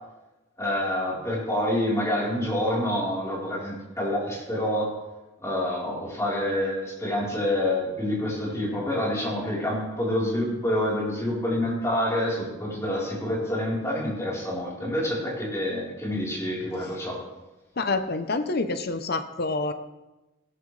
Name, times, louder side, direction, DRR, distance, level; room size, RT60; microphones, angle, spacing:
voice 1, 0.6-4.9 5.4-17.2, left 1 dB, 15° left, -5 dB, 3.9 m, -27 dB
voice 2, 17.8-19.7, left 3 dB, 45° left, 9 dB, 0.7 m, -27 dB
16.5 x 12.5 x 3.3 m, 1.0 s
head